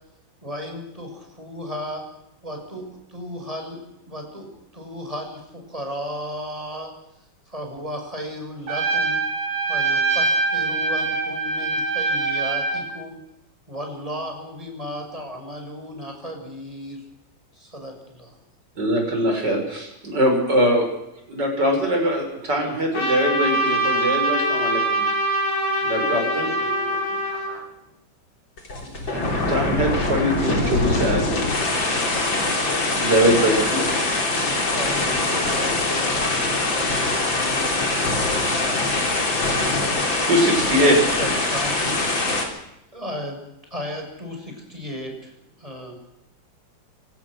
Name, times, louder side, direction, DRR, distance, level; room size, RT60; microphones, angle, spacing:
voice 1, 0.4-2.0 2.4-6.9 7.5-9.2 9.7-13.2 13.7-17.0 17.5-18.4 32.1-33.1 34.3-39.9 40.8-42.0 42.9-43.4 43.7-45.3 45.6-46.0, equal, 15° right, 2 dB, 6.4 m, -35 dB
Trumpet, 8.7-12.9, right 3 dB, 80° right, 5.3 m, -23 dB
voice 2, 18.8-20.9 21.3-25.0 25.8-26.5 28.8-31.5 32.9-33.9 40.3-41.3, equal, 60° right, 2 dB, 7.0 m, -22 dB
Trumpet 2, 22.9-27.6, right 1 dB, 40° left, 7.5 m, -23 dB
voice 3, 25.9-27.2, right 2 dB, 5° left, 1 dB, 5.9 m, -36 dB
sound 1, 28.6-42.4, left 2 dB, 75° left, 4.6 m, -23 dB
27.5 x 17.5 x 6.4 m, 0.86 s
omnidirectional pair, 2.1 m